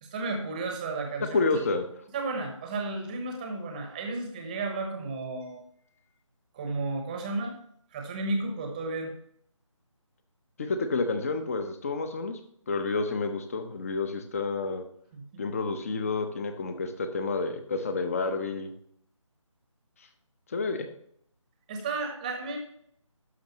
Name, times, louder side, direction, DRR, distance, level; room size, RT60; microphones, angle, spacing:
voice 1, 0.0-1.6 2.1-5.6 6.5-7.6 7.9-9.1 15.1-15.4 21.7-22.6, right 3 dB, 15° right, 4 dB, 0.9 m, -33 dB
voice 2, 1.3-1.8 10.6-12.4 12.7-14.8 15.4-18.7 20.5-20.9, left 3 dB, 25° left, 7 dB, 0.8 m, -29 dB
11.5 x 6.4 x 3.0 m, 0.68 s
figure-of-eight pair, 160°, 17 cm